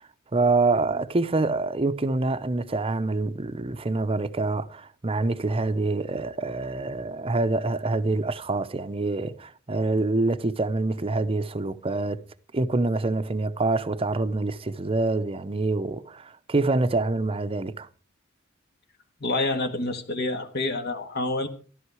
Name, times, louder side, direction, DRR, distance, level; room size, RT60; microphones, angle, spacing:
voice 1, 0.3-12.2 12.5-17.9, right 2 dB, 30° right, 0.7 m, -26 dB
voice 2, 19.2-21.5, left 2 dB, 55° left, 1.7 m, -27 dB
14.0 x 12.5 x 4.8 m
head